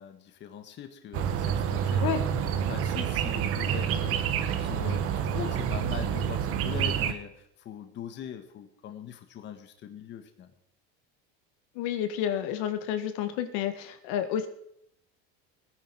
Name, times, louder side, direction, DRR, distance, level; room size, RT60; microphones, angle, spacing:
voice 1, 0.0-10.5, left 8 dB, 35° left, 7 dB, 1.6 m, -41 dB
sound 1, 1.1-7.1, right 8 dB, 45° right, 1.5 m, -28 dB
voice 2, 11.8-14.5, left 9 dB, 65° left, 9 dB, 1.8 m, -30 dB
18.5 x 9.6 x 6.2 m, 0.75 s
cardioid pair, 150°, 31 cm